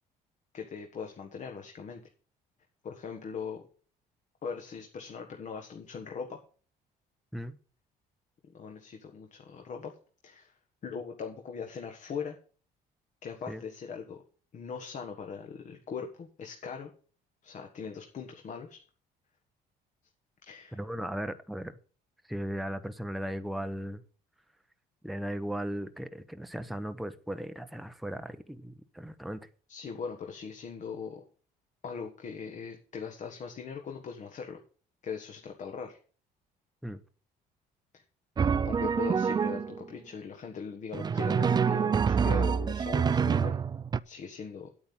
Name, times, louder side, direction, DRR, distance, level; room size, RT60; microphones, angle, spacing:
voice 1, 0.5-2.0 2.8-3.7 4.4-6.4 8.5-9.9 10.2-12.4 13.2-14.2 14.5-16.9 17.4-18.8 20.4-20.8 29.7-31.2 31.8-34.6 35.0-36.0 37.9-38.0 38.6-43.6 44.0-44.7, left 6 dB, 45° left, 1.6 m, -40 dB
voice 2, 20.7-21.8 22.3-24.0 25.0-29.5 36.8-37.0, equal, ahead, 0.8 m, -37 dB
Drum, 38.4-39.8 40.9-44.0, right 6 dB, 25° right, 0.4 m, -26 dB
9.6 x 8.7 x 5.4 m
cardioid pair, 110°, 17 cm